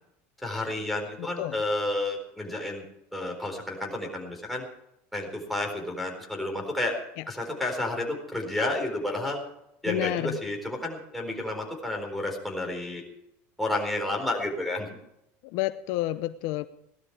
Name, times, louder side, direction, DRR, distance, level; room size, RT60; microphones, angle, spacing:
voice 1, 0.4-2.8 3.1-4.6 5.1-7.0 7.3-9.4 9.8-13.0 13.6-14.9, left 2 dB, ahead, 0 dB, 4.3 m, -31 dB
voice 2, 1.2-1.6 9.9-10.4 15.5-16.7, left 16 dB, 65° left, 12 dB, 0.7 m, -29 dB
18.0 x 12.5 x 4.8 m, 0.80 s
cardioid pair, 140°, 6 cm